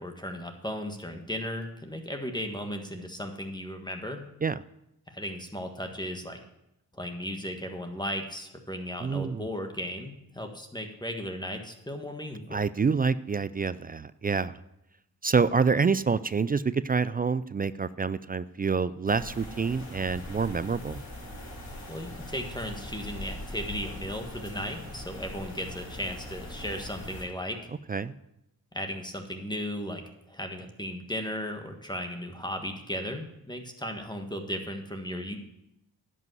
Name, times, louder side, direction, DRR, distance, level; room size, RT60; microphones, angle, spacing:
voice 1, 0.0-4.2 5.1-6.4 6.9-12.6 21.9-27.6 28.7-30.0 30.3-35.4, equal, 10° left, 4 dB, 1.5 m, -36 dB
voice 2, 9.0-9.5 12.5-14.6 15.2-21.0 27.9-28.1, right 5 dB, 25° right, 16 dB, 0.3 m, -27 dB
sound 1, 19.1-27.2, left 1 dB, 50° left, 5.2 m, -41 dB
10.5 x 5.5 x 7.8 m, 0.85 s
cardioid pair, 55°, 38 cm